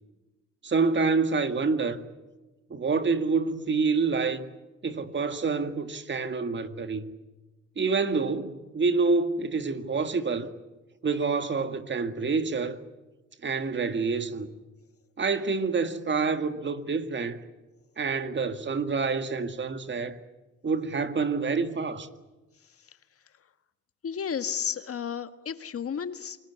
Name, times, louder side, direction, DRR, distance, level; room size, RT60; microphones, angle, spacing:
voice 1, 0.6-2.0 2.7-4.5 4.8-7.1 7.8-10.5 11.0-12.8 13.4-14.5 15.2-17.4 18.0-20.2 20.6-22.1, right 4 dB, 40° right, 2.0 m, -27 dB
voice 2, 24.0-26.4, left 7 dB, 50° left, 1.6 m, -32 dB
29.0 x 20.0 x 8.2 m
cardioid pair, 90°, 30 cm